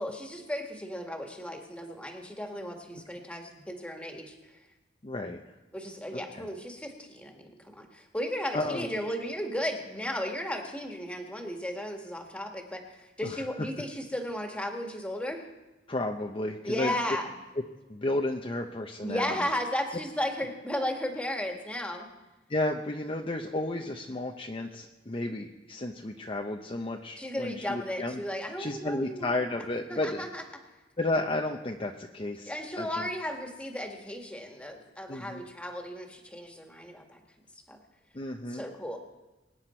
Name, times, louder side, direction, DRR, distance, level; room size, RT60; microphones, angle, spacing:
voice 1, 0.0-4.3 5.7-12.8 13.2-15.4 16.6-17.3 19.0-22.1 27.2-29.5 29.9-30.4 32.5-37.2 37.7-37.8 38.5-39.0, left 1 dB, 5° left, 2 dB, 1.8 m, -35 dB
voice 2, 5.0-5.5 6.1-6.5 8.5-8.9 13.2-13.4 15.9-17.0 17.9-19.5 22.5-28.2 28.6-30.3 31.0-33.1 35.1-35.5 38.1-38.7, left 2 dB, 30° left, 2 dB, 0.7 m, -33 dB
24.0 x 9.7 x 4.4 m, 1.1 s
head